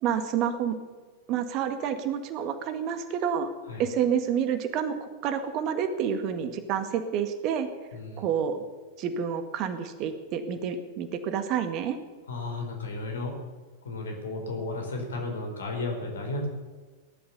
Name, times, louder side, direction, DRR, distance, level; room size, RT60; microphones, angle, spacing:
voice 1, 0.0-0.8 1.3-3.5 3.8-7.7 8.2-8.6 9.0-12.0, right 8 dB, 40° right, 9 dB, 1.7 m, -29 dB
voice 2, 7.9-8.2 12.3-13.4 13.8-16.5, left 2 dB, 70° left, 2 dB, 4.4 m, -33 dB
18.0 x 11.5 x 6.9 m, 1.4 s
figure-of-eight pair, 90°, 0 cm